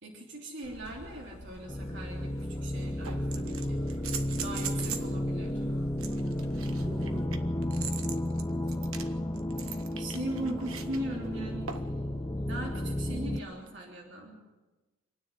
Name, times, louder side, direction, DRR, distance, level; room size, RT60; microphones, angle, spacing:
voice 1, 0.0-4.0 4.4-5.6 9.9-11.8 12.5-14.4, right 1 dB, 55° right, -2 dB, 3.3 m, -39 dB
sound 1, 0.6-7.3, left 1 dB, 85° left, 1.8 m, -49 dB
sound 2, 1.7-13.4, left 1 dB, 15° left, 0.7 m, -33 dB
sound 3, 2.0-2.1 3.0-5.1 6.0-11.0 11.7-12.0 13.7-13.8, right 8 dB, 75° right, 1.4 m, -41 dB
voice 2, 6.6-8.0 8.2-10.1, equal, 15° right, 3 dB, 1.7 m, -47 dB
27.0 x 9.9 x 9.7 m, 1.2 s
head